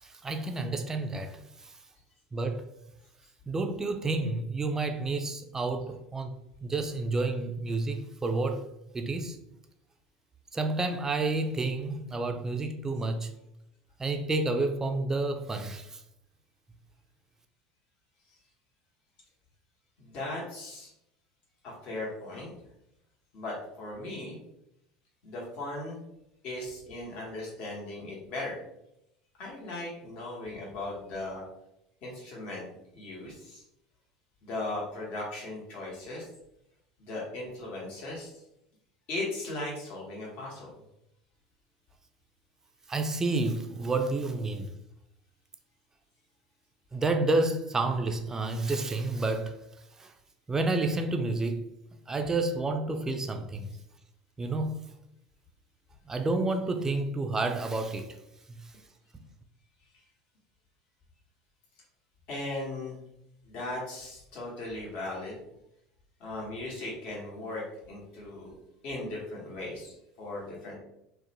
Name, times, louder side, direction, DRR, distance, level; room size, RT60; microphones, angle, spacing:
voice 1, 0.0-1.4 1.6-1.7 2.3-2.7 3.5-6.4 6.6-8.6 8.9-9.4 10.5-13.3 14.0-16.0 42.9-44.7 46.9-49.6 50.0-50.1 50.5-51.6 52.1-53.7 54.4-54.8 56.1-58.1, right 2 dB, 15° right, 0.4 m, -30 dB
voice 2, 20.0-20.9 21.6-22.5 23.3-24.4 25.2-26.0 26.4-28.6 29.4-31.4 32.0-32.7 32.9-33.6 34.4-36.3 37.0-38.4 39.1-40.7 62.3-63.0 63.4-65.4 66.2-68.5 68.8-70.7, left 2 dB, 50° left, 1.0 m, -37 dB
2.6 x 2.1 x 2.7 m
hypercardioid pair, 75°, 3 cm